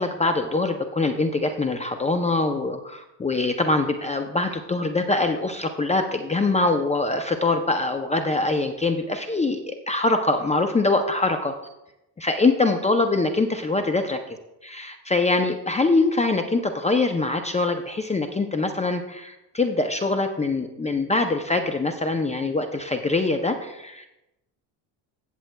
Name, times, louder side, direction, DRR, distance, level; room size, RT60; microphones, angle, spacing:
voice 1, 0.0-11.5 12.2-14.4 14.6-24.0, left 3 dB, 15° left, 6 dB, 0.5 m, -23 dB
15.0 x 7.5 x 2.2 m, 0.92 s
cardioid pair, 110°, 42 cm